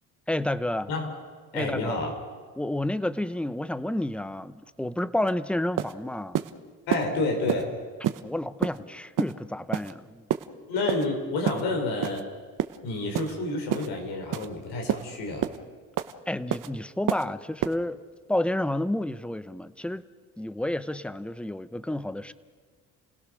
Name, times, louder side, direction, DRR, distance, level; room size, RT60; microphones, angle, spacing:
voice 1, 0.3-0.9 1.5-2.0 2.6-6.4 8.2-10.2 16.3-18.0 18.3-20.0 20.4-22.3, left 1 dB, 5° left, 14 dB, 0.8 m, -30 dB
voice 2, 1.5-2.1 6.9-7.7 10.7-12.2 12.8-15.5, left 2 dB, 85° left, 2 dB, 5.0 m, -29 dB
sound 1, 5.3-5.4 5.8-5.9 6.3-6.5 6.9-7.0 7.5-7.6 8.0-8.2 8.6-8.8 9.2-9.3 9.7-9.9 10.3-10.5 10.9-11.1 11.5-11.6 12.0-12.2 12.6-12.8 13.1-13.3 13.7-13.9 14.3-14.5 14.9-15.0 15.4-15.6 16.0-16.1 16.5-16.7 17.1-17.3 17.6-17.7, right 11 dB, 55° right, 1.1 m, -28 dB
30.0 x 17.0 x 6.5 m, 1.5 s
cardioid pair, 90°, 37 cm